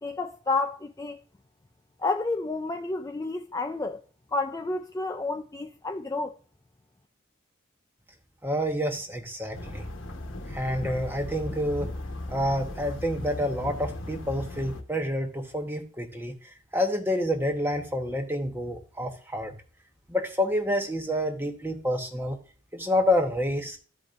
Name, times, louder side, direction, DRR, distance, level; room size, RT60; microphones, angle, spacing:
voice 1, 0.0-1.2 2.0-4.0 4.3-6.3, left 3 dB, 15° left, 0.3 m, -30 dB
voice 2, 8.4-9.8 10.5-11.9 12.3-19.5 20.1-22.4 22.7-23.8, left 1 dB, 10° right, 1.0 m, -28 dB
sound 1, 9.5-14.8, left 1 dB, 70° left, 1.1 m, -37 dB
13.0 x 5.0 x 2.5 m
head